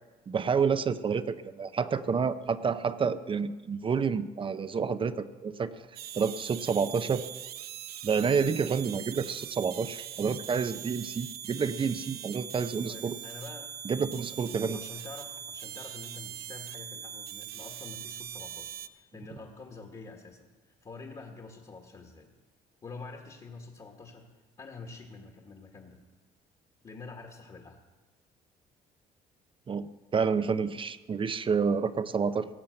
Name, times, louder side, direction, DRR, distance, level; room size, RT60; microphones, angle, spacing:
voice 1, 0.3-5.8 6.1-7.3 8.0-13.2 13.8-14.8 29.7-32.5, right 6 dB, 30° right, 13 dB, 0.6 m, -29 dB
sound 1, 6.0-18.9, right 10 dB, 65° right, 0.8 m, -42 dB
voice 2, 12.9-13.7 14.1-22.3 22.8-24.3 24.6-26.0 26.8-27.8, left 3 dB, 30° left, 2 dB, 1.6 m, -47 dB
17.5 x 7.4 x 7.8 m, 1.3 s
cardioid pair, 110°, 17 cm